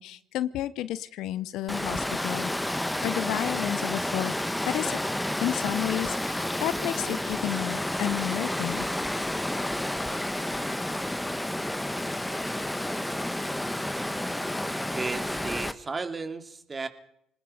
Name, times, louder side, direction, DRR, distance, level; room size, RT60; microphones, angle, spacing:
voice 1, 0.0-4.3 4.7-5.0 5.4-8.8, left 13 dB, 65° left, 17 dB, 0.9 m, -31 dB
Water, 1.7-15.7, left 1 dB, 5° left, 1.5 m, -30 dB
voice 2, 14.9-16.9, right 4 dB, 30° right, 8 dB, 2.8 m, -34 dB
26.5 x 19.5 x 5.1 m, 0.73 s
hypercardioid pair, 60°, 0 cm